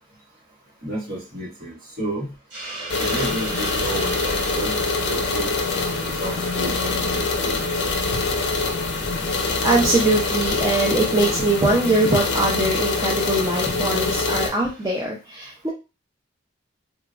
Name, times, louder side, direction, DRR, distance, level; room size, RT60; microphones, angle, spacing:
voice 1, 0.8-2.3 3.0-4.7 5.0-7.6 8.1-8.2 9.0-9.1, right 1 dB, 45° right, -4 dB, 1.2 m, -32 dB
Hiss, 2.5-15.0, right 2 dB, 60° right, 1.7 m, -37 dB
sound 1, 2.9-14.5, left 3 dB, 55° left, 0.5 m, -24 dB
voice 2, 9.4-15.7, right 2 dB, 15° right, -4 dB, 0.4 m, -22 dB
3.7 x 2.3 x 2.4 m, 0.29 s
head